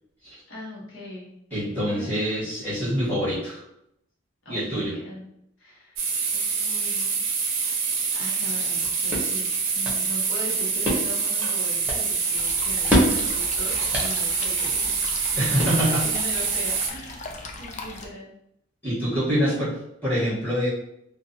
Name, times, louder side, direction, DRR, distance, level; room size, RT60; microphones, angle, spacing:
voice 1, 0.5-1.3 1.8-2.3 4.4-5.2 5.6-7.2 8.1-9.5 9.7-15.0 15.3-15.7 16.0-17.2 17.6-18.3 19.4-19.6, left 1 dB, 80° left, -5 dB, 0.9 m, -39 dB
voice 2, 1.5-3.6 4.5-4.9 15.4-16.0 18.8-19.7 20.0-20.7, equal, 10° left, -11 dB, 1.3 m, -25 dB
sound 1, 6.0-16.9, right 5 dB, 85° right, 0.5 m, -26 dB
tennis racket impacts, 8.6-16.2, equal, 10° right, 0.6 m, -30 dB
sound 2, 12.4-18.1, left 2 dB, 35° left, 0.3 m, -38 dB
2.6 x 2.1 x 2.6 m, 0.78 s
head